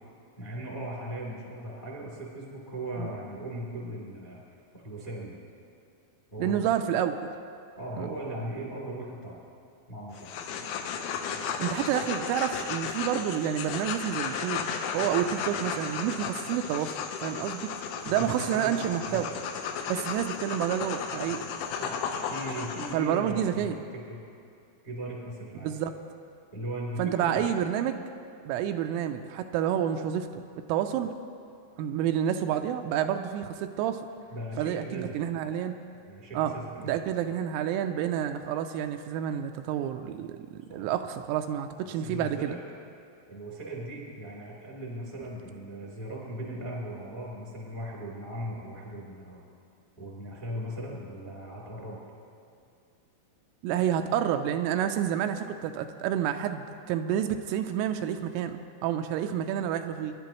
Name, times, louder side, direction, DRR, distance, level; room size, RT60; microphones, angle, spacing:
voice 1, 0.4-4.4 4.7-5.4 6.3-6.7 7.8-9.4 9.9-10.3 11.3-11.4 18.0-19.2 21.8-22.0 22.3-24.2 24.8-25.7 26.5-27.6 34.3-35.3 36.1-37.1 40.7-40.8 41.8-42.6 43.3-49.4 50.0-52.0, right 1 dB, 20° left, -3 dB, 1.2 m, -38 dB
voice 2, 6.4-7.2 8.0-8.1 11.6-14.6 14.9-16.9 17.2-19.3 19.9-21.4 22.9-23.8 25.6-25.9 27.0-28.0 28.5-31.1 31.8-34.1 34.6-35.8 36.3-36.5 36.8-42.6 53.6-60.1, right 10 dB, 85° right, 7 dB, 3.1 m, -29 dB
sound 1, 10.1-22.9, left 6 dB, 75° left, 3.0 m, -34 dB
26.5 x 11.5 x 3.0 m, 2.4 s
omnidirectional pair, 5.9 m